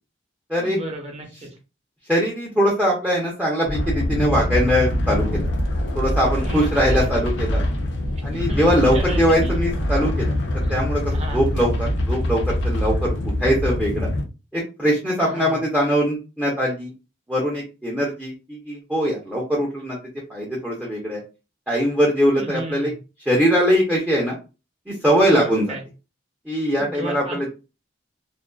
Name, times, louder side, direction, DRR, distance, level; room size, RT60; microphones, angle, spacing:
voice 1, 0.6-1.3 6.4-7.0 8.3-9.2 11.1-11.4 15.2-15.6 22.3-22.9 25.2-25.8 26.8-27.5, right 2 dB, 35° right, 0 dB, 0.8 m, -34 dB
voice 2, 2.1-5.5 5.9-7.6 8.2-10.3 10.7-11.0 11.3-14.1 14.5-16.9 17.3-20.0 20.3-21.2 21.7-22.9 23.3-24.4 24.9-25.7 26.5-27.5, equal, 10° right, -3 dB, 0.6 m, -21 dB
sound 1, 3.7-14.2, left 1 dB, 70° left, 0.5 m, -24 dB
2.5 x 2.2 x 2.2 m, 0.30 s
head